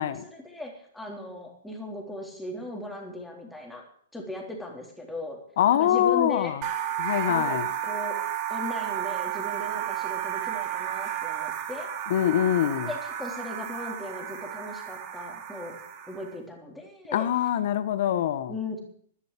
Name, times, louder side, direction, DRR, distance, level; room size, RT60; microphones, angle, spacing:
voice 1, 0.1-3.9 4.1-5.4 5.7-6.6 7.3-7.6 7.8-8.2 8.5-11.9 12.8-15.8 16.1-17.3 18.5-18.8, left 1 dB, 5° left, 0 dB, 3.6 m, -38 dB
voice 2, 5.6-6.6 7.0-7.7 12.1-12.9 17.1-18.5, left 11 dB, 60° left, 14 dB, 1.4 m, -24 dB
sound 1, 6.6-16.3, right 10 dB, 35° right, 2.7 m, -32 dB
12.0 x 10.0 x 9.3 m, 0.63 s
hypercardioid pair, 145°, 0 cm